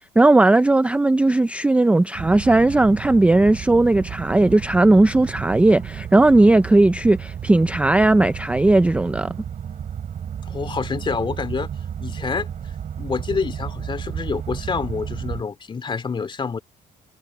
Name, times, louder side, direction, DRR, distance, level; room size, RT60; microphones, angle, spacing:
voice 1, 0.2-9.3, right 2 dB, 5° right, 0.4 m, -16 dB
sound 1, 2.1-15.4, right 8 dB, 50° right, 4.4 m, -33 dB
voice 2, 10.5-11.7 12.0-12.5 13.0-16.6, left 5 dB, 30° left, 2.7 m, -27 dB
cardioid pair, 110°, 17 cm